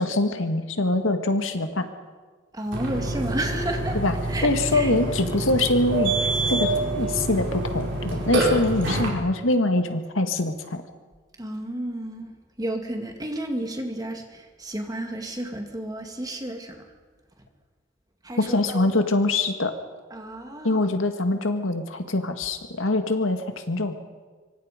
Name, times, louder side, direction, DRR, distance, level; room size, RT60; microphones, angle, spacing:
voice 1, 0.0-1.9 3.9-4.2 4.4-10.8 18.4-19.7 20.6-23.9, left 2 dB, 85° left, 7 dB, 2.0 m, -24 dB
voice 2, 2.5-4.0 4.3-4.9 11.4-12.3 12.6-16.8 18.2-18.9 20.1-20.9, right 1 dB, 20° right, 3 dB, 2.5 m, -32 dB
Burping eructation, 2.7-9.1, right 2 dB, 65° right, 4.9 m, -26 dB
25.0 x 24.5 x 5.3 m, 1.4 s
head